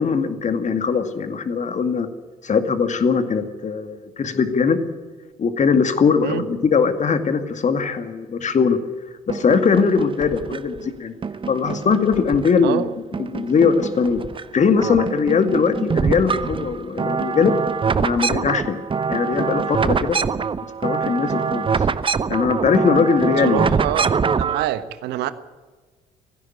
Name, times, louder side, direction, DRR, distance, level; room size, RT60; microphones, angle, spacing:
voice 1, 0.0-2.1 2.4-4.8 5.4-8.8 9.3-11.1 11.5-12.9 13.2-14.2 14.5-17.5 18.0-18.8 19.1-20.2 20.8-21.7 22.3-23.7, left 5 dB, 40° left, 8 dB, 2.3 m, -20 dB
sound 1, 9.3-10.8 11.2-12.8 13.1-14.4 14.7-24.7, right 5 dB, 25° right, 0.8 m, -24 dB
voice 2, 23.4-24.1 24.4-25.3, right 13 dB, 60° right, 13 dB, 1.3 m, -25 dB
18.0 x 16.0 x 9.3 m, 1.4 s
figure-of-eight pair, 50°, 19 cm